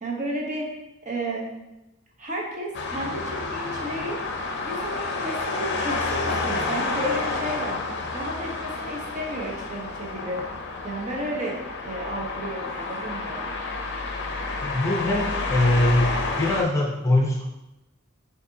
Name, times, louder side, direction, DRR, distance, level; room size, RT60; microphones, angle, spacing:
voice 1, 0.0-0.7 1.0-1.5 2.2-4.2 4.6-7.8 8.1-10.4 10.8-11.6 11.8-13.5, right 1 dB, 40° right, -2 dB, 0.9 m, -32 dB
sound 1, 2.7-16.6, left 3 dB, 60° left, 0.5 m, -30 dB
voice 2, 14.6-17.4, left 1 dB, 15° left, -3 dB, 0.6 m, -22 dB
6.4 x 2.6 x 2.7 m, 0.94 s
head